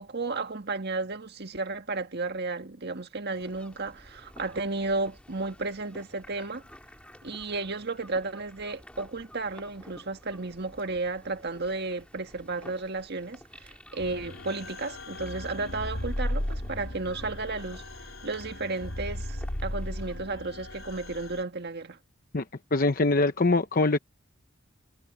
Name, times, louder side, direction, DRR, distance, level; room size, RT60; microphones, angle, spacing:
voice 1, 0.0-6.6 7.2-17.8 18.2-22.0, right 3 dB, 55° right, 1.8 m, -33 dB
sound 1, 3.3-20.2, equal, 5° left, 3.9 m, -52 dB
sound 2, 14.0-21.4, left 1 dB, 85° left, 3.9 m, -36 dB
voice 2, 22.7-24.0, left 2 dB, 45° left, 0.8 m, -23 dB
head